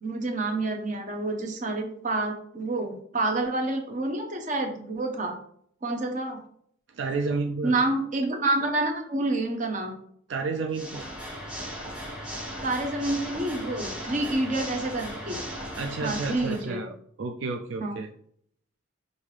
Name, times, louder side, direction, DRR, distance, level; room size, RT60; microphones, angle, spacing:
voice 1, 0.0-5.4 5.8-6.4 7.6-9.9 12.6-15.4 16.0-16.8 17.8-17.9, right 2 dB, 40° right, 3 dB, 0.8 m, -28 dB
voice 2, 6.9-7.8 10.3-11.0 15.8-18.1, right 3 dB, 70° right, 3 dB, 0.4 m, -31 dB
Water / Mechanisms, 10.7-16.7, equal, 5° right, 0.9 m, -37 dB
5.3 x 2.7 x 3.3 m, 0.65 s
head